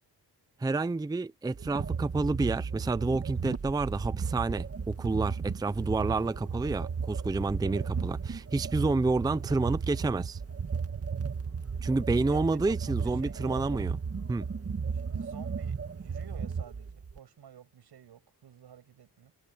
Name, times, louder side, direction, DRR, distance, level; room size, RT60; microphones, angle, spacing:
voice 1, 0.6-10.4 11.8-13.9 14.3-14.5, right 3 dB, 10° right, 0.5 m, -29 dB
sound 1, 1.5-17.2, right 5 dB, 35° right, 1.8 m, -34 dB
voice 2, 12.2-14.0 14.9-19.3, right 9 dB, 90° right, 7.0 m, -51 dB
wide cardioid pair, 125°, 38 cm